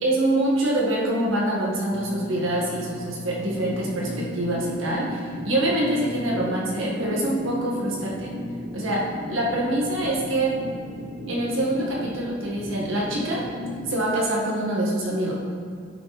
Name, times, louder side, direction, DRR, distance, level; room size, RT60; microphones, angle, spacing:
voice 1, 0.0-8.3 8.7-9.0 9.3-10.5 11.3-13.4 13.9-15.3, right 1 dB, 85° right, -4 dB, 1.7 m, -25 dB
Wind instrument woodwind instrument, 1.8-6.4, left 1 dB, 90° left, 0.6 m, -41 dB
sound 1, 3.4-13.9, left 1 dB, 60° right, 1.4 m, -35 dB
9.2 x 4.0 x 4.3 m, 2.2 s
head